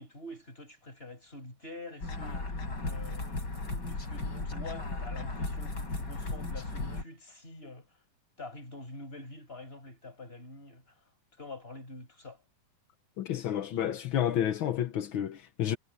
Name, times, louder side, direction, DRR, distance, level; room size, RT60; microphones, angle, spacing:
voice 1, 0.0-2.5 2.8-3.5 3.9-7.9 8.4-10.8 11.4-12.4, left 2 dB, 15° left, 6.4 m, -46 dB
sound 1, 2.0-7.0, left 2 dB, 30° left, 5.7 m, -35 dB
voice 2, 13.2-15.8, left 10 dB, 65° left, 1.3 m, -30 dB
omnidirectional pair, 3.5 m